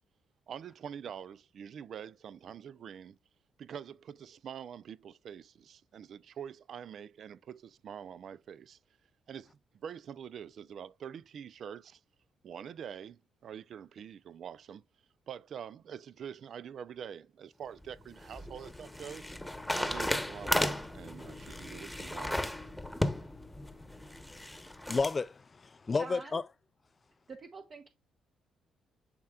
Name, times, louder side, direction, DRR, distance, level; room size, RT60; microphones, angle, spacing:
voice 1, 0.5-3.2 3.6-8.8 9.3-12.0 12.4-14.8 15.3-19.3 19.7-22.5, right 8 dB, 60° right, 0.4 m, -45 dB
sound 1, 17.8-25.2, left 1 dB, 5° left, 1.1 m, -35 dB
voice 2, 24.2-26.4, left 4 dB, 30° left, 0.3 m, -33 dB
voice 3, 26.0-26.4 27.3-27.9, right 4 dB, 40° right, 1.0 m, -46 dB
11.0 x 4.4 x 2.4 m
cardioid pair, 90°, 0 cm